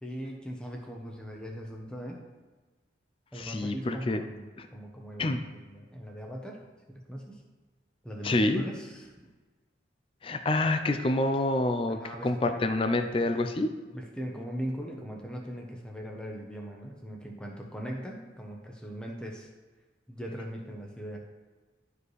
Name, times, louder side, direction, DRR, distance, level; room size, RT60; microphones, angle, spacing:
voice 1, 0.0-2.2 3.3-6.6 6.9-7.4 8.0-9.1 11.9-13.0 13.9-19.5 20.1-21.2, equal, 5° left, 0 dB, 0.8 m, -40 dB
voice 2, 3.4-4.2 4.6-4.7 5.2-5.4 8.2-8.6 10.2-13.7, left 2 dB, 30° left, 8 dB, 0.4 m, -27 dB
11.5 x 4.9 x 3.2 m, 1.3 s
head